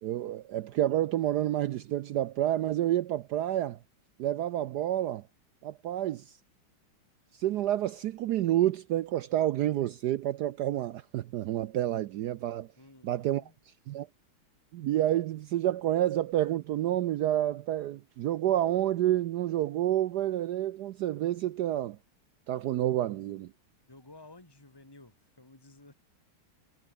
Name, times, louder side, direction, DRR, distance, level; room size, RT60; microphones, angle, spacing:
voice 1, 0.0-3.8 4.2-5.2 5.6-6.2 7.4-12.7 13.0-13.4 13.9-14.1 14.7-22.0 22.5-23.5, right 13 dB, 75° right, 0.9 m, -29 dB
voice 2, 12.8-13.6 23.9-25.9, left 2 dB, 10° left, 3.2 m, -54 dB
omnidirectional pair, 2.3 m